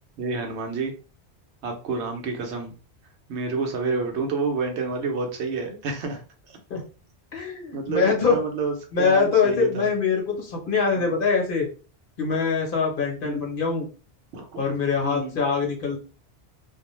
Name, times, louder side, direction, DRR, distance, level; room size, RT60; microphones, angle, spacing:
voice 1, 0.2-0.9 1.6-2.7 3.3-6.6 7.7-9.9 11.0-11.1 13.2-13.4 14.3-14.6 15.0-15.4, right 4 dB, 90° right, 3 dB, 1.0 m, -29 dB
voice 2, 7.3-8.4 8.9-11.7 12.2-13.9 14.6-16.0, left 5 dB, 55° left, 1 dB, 1.0 m, -23 dB
2.4 x 2.0 x 3.0 m, 0.37 s
omnidirectional pair, 1.1 m